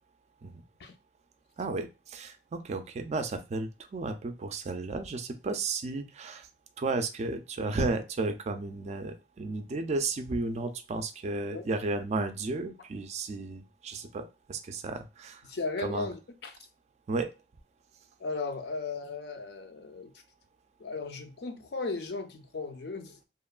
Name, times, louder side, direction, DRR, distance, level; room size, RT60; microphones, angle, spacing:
voice 1, 1.6-6.5 6.8-15.4 15.8-16.1 17.1-17.3, right 3 dB, 40° right, 0.4 m, -33 dB
voice 2, 15.4-16.6 18.2-20.1 20.8-23.2, left 3 dB, 65° left, 0.5 m, -36 dB
3.0 x 2.2 x 2.3 m
head